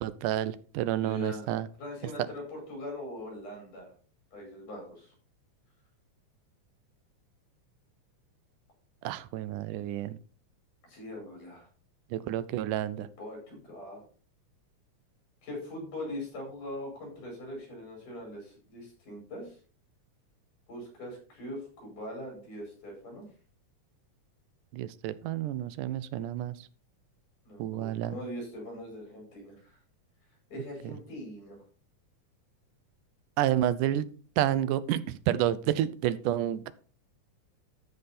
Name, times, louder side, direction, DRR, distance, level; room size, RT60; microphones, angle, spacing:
voice 1, 0.0-1.7 9.0-10.2 12.1-13.1 24.7-26.6 27.6-28.2 30.9-31.0 33.4-34.1 34.4-36.7, right 12 dB, 90° right, 16 dB, 2.2 m, -30 dB
voice 2, 1.0-1.5 1.8-3.9 4.3-5.1 10.9-11.7 13.2-14.1 15.4-19.6 20.7-23.3 27.5-29.8 30.5-31.6, left 1 dB, 85° left, 0 dB, 6.8 m, -41 dB
13.5 x 5.5 x 4.3 m, 0.40 s
omnidirectional pair, 3.5 m